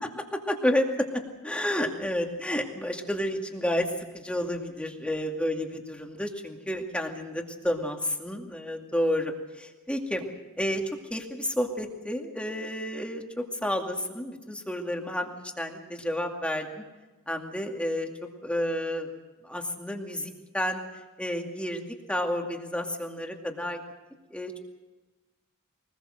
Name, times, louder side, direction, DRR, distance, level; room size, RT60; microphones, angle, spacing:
voice 1, 0.5-1.1 1.4-10.3 10.6-10.8 11.1-15.3 15.6-16.8 17.3-18.1 18.4-19.1 19.4-20.8 21.2-21.8 22.1-23.8 24.3-24.5, left 1 dB, 5° left, 2 dB, 2.2 m, -30 dB
24.0 x 20.0 x 6.5 m, 1.2 s
head